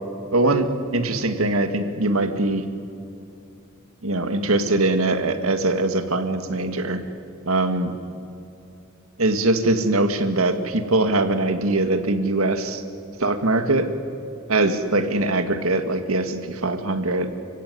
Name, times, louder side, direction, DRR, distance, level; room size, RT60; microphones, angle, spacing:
voice 1, 0.3-2.7 4.0-7.0 7.5-7.9 9.2-12.8 13.2-13.9 14.5-17.3, right 2 dB, 75° right, 8 dB, 2.0 m, -22 dB
30.0 x 16.5 x 9.6 m, 2.6 s
head